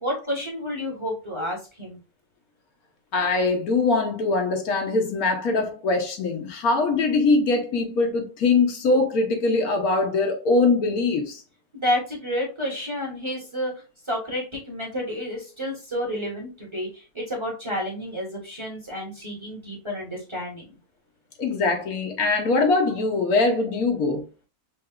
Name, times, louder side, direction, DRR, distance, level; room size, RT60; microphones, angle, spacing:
voice 1, 0.0-2.0 11.7-13.7 14.1-20.6, equal, 20° right, 1.1 m, -30 dB
voice 2, 3.1-11.4 21.4-24.2, left 3 dB, 70° left, 1.3 m, -22 dB
5.7 x 2.5 x 2.4 m
omnidirectional pair, 1.6 m